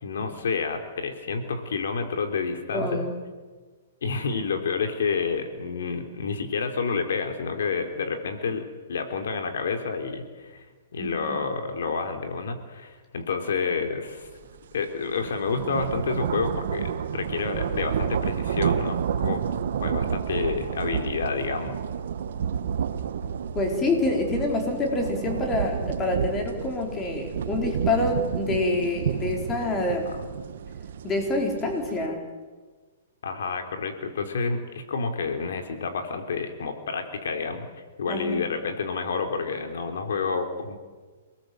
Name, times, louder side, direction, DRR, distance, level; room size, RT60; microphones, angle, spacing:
voice 1, 0.0-3.1 4.0-10.6 10.9-14.3 14.7-19.4 19.8-21.7 30.1-30.2 33.2-37.7 38.0-40.8, left 5 dB, 75° left, 5 dB, 3.6 m, -29 dB
voice 2, 2.7-3.1 11.0-11.4 23.5-30.0 31.0-32.2 38.1-38.4, left 2 dB, 15° left, 2 dB, 4.6 m, -27 dB
sound 1, 14.2-14.4 14.8-32.1, right 8 dB, 65° right, 1.6 m, -30 dB
28.5 x 20.0 x 8.0 m, 1.4 s
hypercardioid pair, 155°, 0 cm